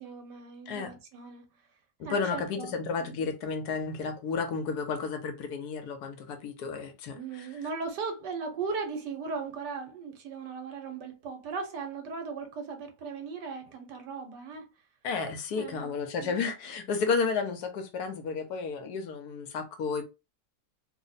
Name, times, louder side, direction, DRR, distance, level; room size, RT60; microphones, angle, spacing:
voice 1, 0.0-1.4 2.0-2.7 3.0-3.2 7.1-14.7 15.5-15.9 16.2-16.4, right 4 dB, 80° right, 1.5 m, -37 dB
voice 2, 2.0-7.5 15.0-20.1, left 5 dB, 70° left, 1.1 m, -32 dB
3.2 x 2.1 x 3.9 m
omnidirectional pair, 1.8 m